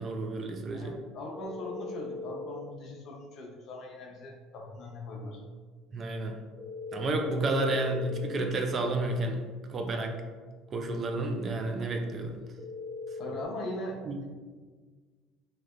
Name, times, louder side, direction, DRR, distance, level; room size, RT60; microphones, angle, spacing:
voice 1, 0.0-0.9 5.9-6.4 6.9-9.4 9.7-10.1 10.7-12.4 14.1-14.2, right 2 dB, 35° right, 4 dB, 0.3 m, -31 dB
voice 2, 0.7-5.4 13.2-14.2, left 1 dB, 50° left, 0 dB, 0.6 m, -40 dB
sound 1, 1.4-2.6 6.6-8.6 12.6-13.4, left 3 dB, 10° left, 0.7 m, -39 dB
3.2 x 2.7 x 2.3 m, 1.5 s
cardioid pair, 125°, 0 cm